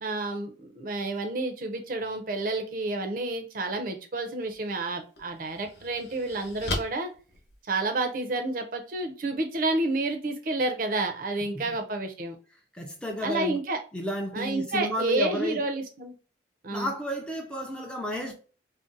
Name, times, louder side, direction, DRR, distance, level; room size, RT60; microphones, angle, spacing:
voice 1, 0.0-7.1 7.7-12.4 13.2-13.8 14.3-16.1 16.6-16.9, right 2 dB, 50° right, 0.5 m, -30 dB
sound 1, 4.4-4.6 5.2-8.2, left 2 dB, 65° left, 0.9 m, -37 dB
voice 2, 12.7-13.6 13.9-15.6 16.7-18.3, equal, 5° left, 0.4 m, -32 dB
2.6 x 2.0 x 3.8 m
head